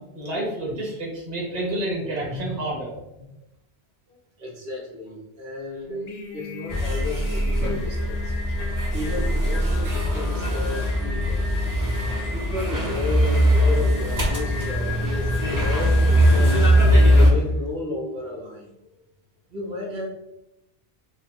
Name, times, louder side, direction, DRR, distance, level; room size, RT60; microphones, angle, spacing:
voice 1, 0.0-3.0 12.8-12.9, right 1 dB, 40° right, -5 dB, 1.3 m, -29 dB
voice 2, 4.1-8.3 8.9-11.5 12.3-15.4 15.6-16.9 17.2-18.9 19.5-20.1, left 2 dB, 90° right, -3 dB, 1.2 m, -33 dB
Singing, 5.8-17.6, left 5 dB, 60° left, 0.8 m, -36 dB
sound 1, 6.7-17.3, equal, 20° right, 0.6 m, -21 dB
3.5 x 2.1 x 4.2 m, 0.85 s
omnidirectional pair, 1.1 m